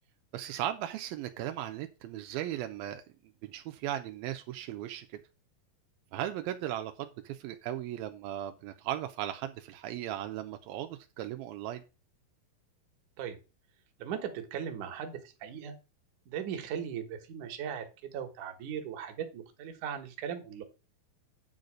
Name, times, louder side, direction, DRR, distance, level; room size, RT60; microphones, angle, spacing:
voice 1, 0.3-3.0 3.4-5.2 6.1-11.8, right 12 dB, 85° right, 2.5 m, -37 dB
voice 2, 14.0-15.8 16.3-20.6, right 8 dB, 65° right, 2.6 m, -38 dB
9.7 x 4.0 x 6.4 m
omnidirectional pair, 4.3 m